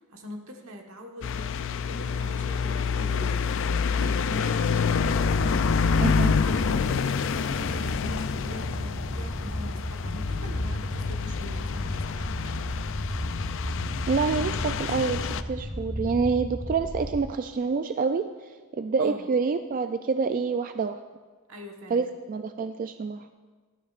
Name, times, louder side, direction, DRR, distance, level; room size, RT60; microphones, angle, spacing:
voice 1, 0.0-5.1 5.9-12.8 19.0-19.3 21.5-22.1, equal, 75° right, 2 dB, 1.4 m, -43 dB
sound 1, 1.2-15.4, left 5 dB, 65° left, 0.4 m, -27 dB
sound 2, 4.9-17.2, equal, 10° left, 1.4 m, -34 dB
voice 2, 6.0-6.3 14.1-21.0 21.9-23.3, right 5 dB, 40° right, 9 dB, 0.3 m, -27 dB
16.5 x 12.5 x 2.5 m, 1.4 s
head